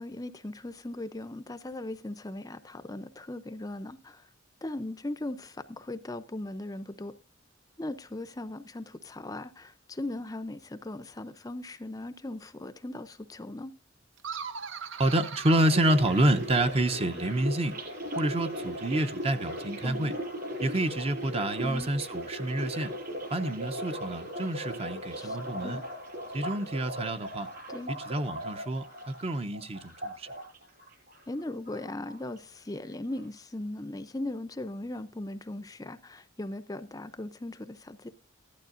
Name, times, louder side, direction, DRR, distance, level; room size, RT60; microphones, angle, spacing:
voice 1, 0.0-4.2 4.6-7.1 7.8-13.7 19.8-20.1 21.6-21.9 25.1-25.4 25.6-25.8 27.7-27.9 31.3-38.1, left 1 dB, 20° left, 0.5 m, -38 dB
sound 1, 14.2-16.7, right 6 dB, 70° right, 0.8 m, -40 dB
voice 2, 15.0-17.8 18.1-20.1 20.6-22.9 23.3-25.8 26.3-27.5 27.9-30.3, right 1 dB, 30° right, 0.6 m, -28 dB
sound 2, 15.4-31.4 31.6-32.6 32.8-33.2, equal, 50° right, 5.4 m, -38 dB
15.5 x 11.5 x 2.5 m
head